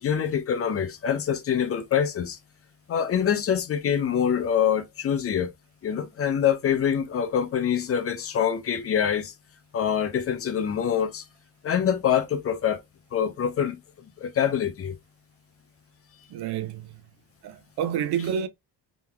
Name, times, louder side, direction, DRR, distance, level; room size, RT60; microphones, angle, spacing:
voice 1, 0.0-2.4 2.9-5.5 5.8-9.3 9.7-11.2 11.6-12.8 13.1-13.8 14.2-15.0, left 8 dB, 35° left, 0.6 m, -25 dB
voice 2, 16.3-16.9 17.4-18.5, right 8 dB, 70° right, 0.7 m, -29 dB
3.6 x 3.0 x 3.2 m
cardioid pair, 160°, 40 cm